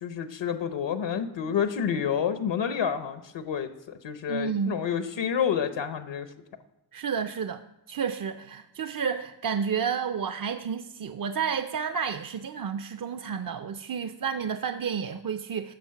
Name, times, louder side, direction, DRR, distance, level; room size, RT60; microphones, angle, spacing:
voice 1, 0.0-6.3, left 8 dB, 80° left, 0.9 m, -29 dB
voice 2, 4.3-4.8 6.9-15.7, right 6 dB, 50° right, 0.6 m, -31 dB
14.0 x 7.2 x 5.8 m
cardioid pair, 70°, 43 cm